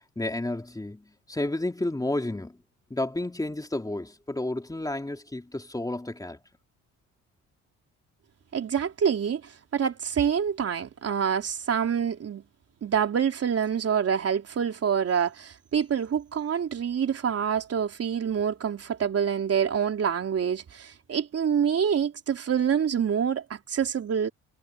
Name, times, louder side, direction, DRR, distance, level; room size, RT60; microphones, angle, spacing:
voice 1, 0.2-2.6 2.9-6.4, left 2 dB, 10° left, 3.7 m, -31 dB
voice 2, 8.5-12.4 12.8-24.3, right 7 dB, 55° right, 3.6 m, -26 dB
cardioid pair, 90°, 30 cm